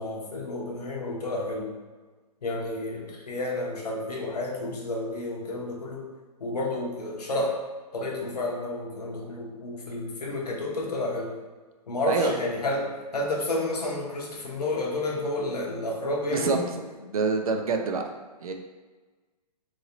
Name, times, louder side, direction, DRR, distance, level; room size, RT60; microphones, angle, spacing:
voice 1, 0.0-1.7 2.4-6.1 6.4-7.5 7.9-11.4 11.9-16.7, left 2 dB, 70° left, -2 dB, 0.9 m, -30 dB
voice 2, 17.1-18.0 18.4-18.5, right 4 dB, 60° right, 4 dB, 0.5 m, -25 dB
3.1 x 2.7 x 2.8 m, 1.3 s
figure-of-eight pair, 125°, 21 cm